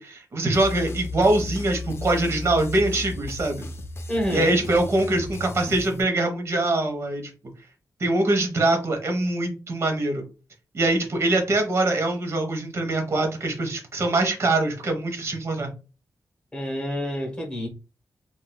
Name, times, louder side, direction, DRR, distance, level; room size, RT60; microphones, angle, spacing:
voice 1, 0.0-3.7 4.3-7.3 8.0-10.2 10.7-15.7, right 2 dB, 45° right, 0.8 m, -23 dB
sound 1, 0.5-6.0, left 3 dB, 40° left, 0.4 m, -34 dB
voice 2, 4.1-4.5 16.5-17.7, equal, 15° left, 0.9 m, -28 dB
3.7 x 2.2 x 2.2 m
wide cardioid pair, 145°, 6 cm